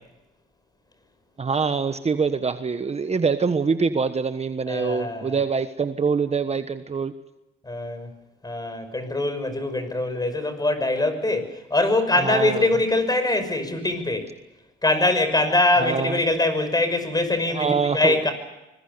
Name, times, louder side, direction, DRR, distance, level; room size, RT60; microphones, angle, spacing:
voice 1, 1.4-7.1 12.2-12.7 15.8-16.2 17.5-18.2, right 5 dB, 30° right, 9 dB, 1.3 m, -24 dB
voice 2, 4.7-5.4 7.7-8.1 8.4-14.3 14.8-18.3, left 2 dB, 20° left, 10 dB, 5.9 m, -23 dB
25.5 x 21.5 x 6.8 m, 0.96 s
cardioid pair, 90°, 20 cm